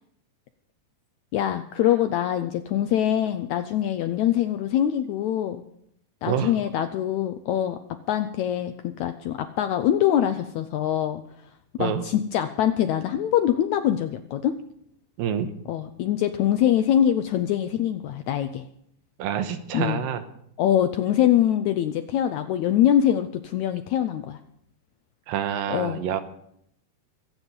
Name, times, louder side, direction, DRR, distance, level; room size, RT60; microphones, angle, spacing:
voice 1, 1.3-5.6 6.2-7.8 8.1-11.2 11.8-14.5 15.7-18.6 19.7-20.0 20.6-24.4 25.7-26.0, left 11 dB, 80° left, 9 dB, 1.7 m, -23 dB
voice 2, 15.2-15.5 19.2-20.2 25.3-26.2, right 8 dB, 85° right, 9 dB, 2.8 m, -27 dB
23.5 x 9.0 x 5.4 m, 0.73 s
omnidirectional pair, 4.0 m